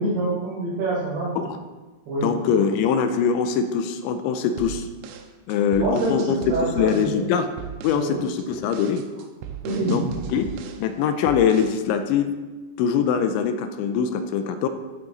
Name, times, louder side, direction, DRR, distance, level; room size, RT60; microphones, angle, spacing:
voice 1, 0.0-1.3 2.1-2.3 5.8-7.3 7.9-8.2 9.6-10.0, right 2 dB, 70° right, -11 dB, 5.7 m, -26 dB
voice 2, 2.2-4.9 5.5-6.4 6.7-7.5 7.8-9.0 9.9-10.0 10.3-10.5 10.8-12.3 12.8-14.7, left 7 dB, 85° left, 8 dB, 3.0 m, -23 dB
sound 1, 4.6-7.2 7.6-8.1 8.4-10.9 11.3-11.8, right 9 dB, 90° right, 3.1 m, -38 dB
14.0 x 7.3 x 4.0 m, 1.2 s
omnidirectional pair, 5.3 m